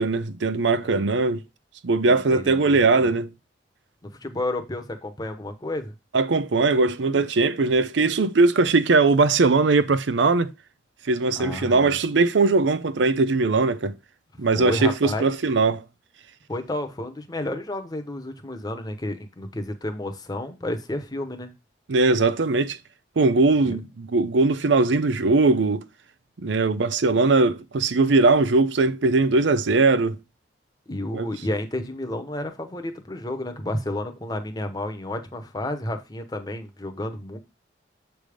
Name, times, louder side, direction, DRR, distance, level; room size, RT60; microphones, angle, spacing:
voice 1, 0.0-1.4 1.8-3.3 6.1-10.5 11.0-13.9 14.4-15.8 21.9-22.8 23.2-25.8 26.4-30.2 31.1-31.3, right 3 dB, 85° right, 0.6 m, -20 dB
voice 2, 2.1-3.1 4.0-5.9 11.3-12.0 14.3-15.3 16.5-21.5 23.6-23.8 30.9-37.4, left 1 dB, 20° left, 0.9 m, -31 dB
7.6 x 3.5 x 4.9 m
head